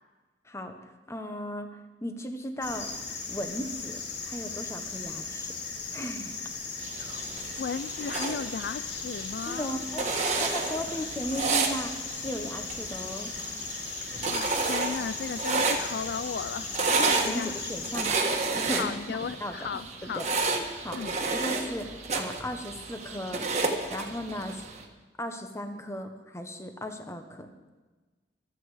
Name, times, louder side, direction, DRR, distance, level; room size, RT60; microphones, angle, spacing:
voice 1, 0.4-3.0 3.3-4.0 4.2-5.5 5.9-6.4 9.4-10.1 10.4-13.3 17.0-18.2 18.5-19.7 20.0-20.3 20.8-21.0 21.3-23.5 23.9-24.6 25.2-27.5, equal, 15° left, 6 dB, 1.1 m, -36 dB
sound 1, 2.6-18.1, left 4 dB, 80° left, 2.2 m, -37 dB
sound 2, 6.8-24.8, right 3 dB, 40° right, 1.5 m, -31 dB
voice 2, 7.6-9.8 13.9-17.6 18.7-20.2 20.9-21.2, left 6 dB, 60° left, 14 dB, 0.3 m, -36 dB
25.0 x 8.4 x 5.0 m, 1.3 s
head